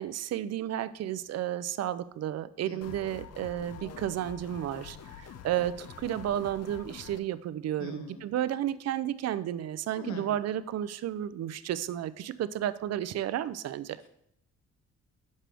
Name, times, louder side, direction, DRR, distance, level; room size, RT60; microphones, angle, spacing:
voice 1, 0.0-14.0, right 11 dB, 60° right, 16 dB, 0.5 m, -32 dB
voice 2, 2.7-3.0 3.8-4.0 7.8-8.3 9.9-10.3, left 5 dB, 70° left, 6 dB, 1.2 m, -44 dB
sound 1, 2.8-7.2, left 8 dB, 55° left, 0.6 m, -46 dB
7.4 x 6.4 x 3.4 m, 0.75 s
cardioid pair, 100°, 29 cm